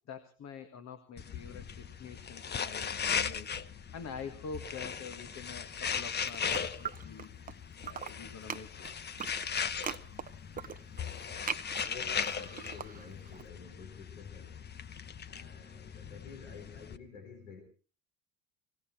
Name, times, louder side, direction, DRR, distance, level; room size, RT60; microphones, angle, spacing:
voice 1, 0.0-3.5 3.8-8.9, left 5 dB, 45° left, 8 dB, 1.9 m, -46 dB
sound 1, 1.2-17.0, left 7 dB, 25° left, 0.9 m, -38 dB
sound 2, 5.9-7.5 7.8-13.4, right 7 dB, 20° right, 0.8 m, -42 dB
voice 2, 11.8-14.6 15.2-17.6, left 5 dB, 85° left, 4 dB, 4.5 m, -50 dB
19.0 x 17.5 x 4.4 m, 0.37 s
hypercardioid pair, 75°, 39 cm